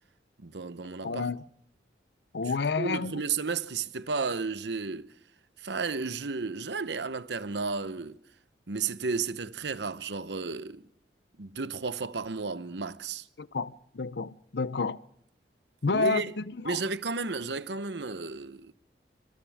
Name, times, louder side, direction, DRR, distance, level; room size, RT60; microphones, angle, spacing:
voice 1, 0.4-1.2 2.4-5.1 5.6-8.2 8.7-10.9 11.4-13.3 15.9-16.3 16.6-18.7, right 4 dB, 80° right, 0.9 m, -33 dB
voice 2, 1.0-1.4 2.3-3.2 13.4-15.0 15.8-16.8, left 4 dB, 70° left, 0.7 m, -30 dB
30.0 x 26.0 x 3.5 m
head